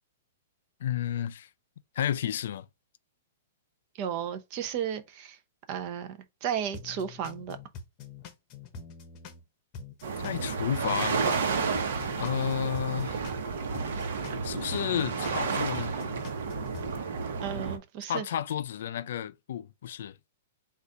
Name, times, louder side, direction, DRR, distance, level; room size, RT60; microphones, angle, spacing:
voice 1, 0.8-1.5 2.0-2.7 10.2-11.4 12.2-13.2 14.4-15.9 18.1-20.2, left 9 dB, 65° left, 0.4 m, -31 dB
voice 2, 3.9-5.4 5.7-7.6 17.4-18.3, right 8 dB, 35° right, 0.7 m, -34 dB
sound 1, 6.7-9.4 9.7-13.4 13.7-16.9, left 5 dB, 30° left, 0.9 m, -45 dB
sound 2, 10.0-17.8, right 5 dB, 70° right, 1.0 m, -31 dB
4.0 x 2.5 x 4.6 m
hypercardioid pair, 150°, 0 cm